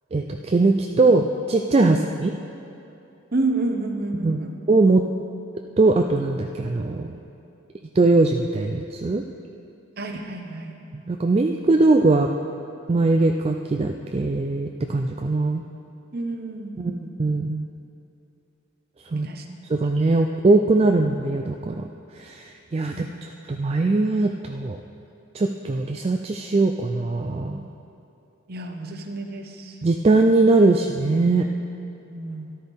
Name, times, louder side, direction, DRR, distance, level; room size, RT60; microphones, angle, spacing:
voice 1, 0.1-2.3 4.1-4.4 4.7-5.0 5.8-7.1 8.0-9.2 11.1-12.3 12.9-15.6 16.8-17.7 19.1-19.3 19.7-21.8 22.1-24.8 25.3-27.7 29.8-31.5, right 2 dB, 30° right, 4 dB, 0.3 m, -21 dB
voice 2, 3.3-4.5 10.0-10.8 16.1-17.0 19.1-19.6 22.9-23.2 28.5-29.8 32.1-32.5, right 2 dB, 50° right, 4 dB, 0.9 m, -30 dB
13.0 x 11.5 x 3.6 m, 2.8 s
head